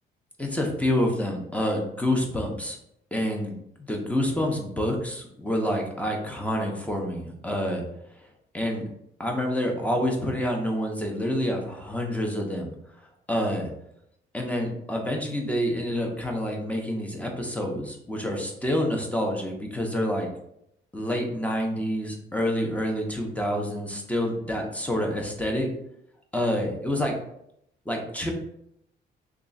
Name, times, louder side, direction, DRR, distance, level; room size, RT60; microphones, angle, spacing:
voice 1, 0.4-2.8 3.1-7.8 8.5-8.8 9.2-12.7 13.3-13.7 14.3-20.3 20.9-25.7 26.3-27.1 27.9-28.3, left 1 dB, 5° left, 1 dB, 0.8 m, -27 dB
3.0 x 2.4 x 3.9 m, 0.75 s
cardioid pair, 90°, 20 cm